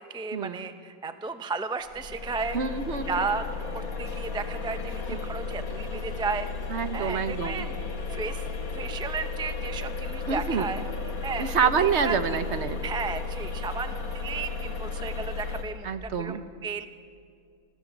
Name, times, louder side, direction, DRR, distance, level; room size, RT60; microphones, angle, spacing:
voice 1, 0.0-2.6 3.1-6.5 6.9-7.8 8.1-8.4 8.7-10.8 11.2-11.6 11.8-12.1 12.8-16.9, right 4 dB, 5° right, 9 dB, 0.5 m, -34 dB
sound 1, 1.9-15.6, left 4 dB, 75° left, 2.3 m, -34 dB
voice 2, 2.5-3.1 5.1-5.2 6.7-7.7 10.3-10.7 11.4-12.8 15.8-16.4, right 6 dB, 55° right, 10 dB, 1.2 m, -27 dB
26.5 x 16.5 x 7.3 m, 2.3 s
omnidirectional pair, 1.5 m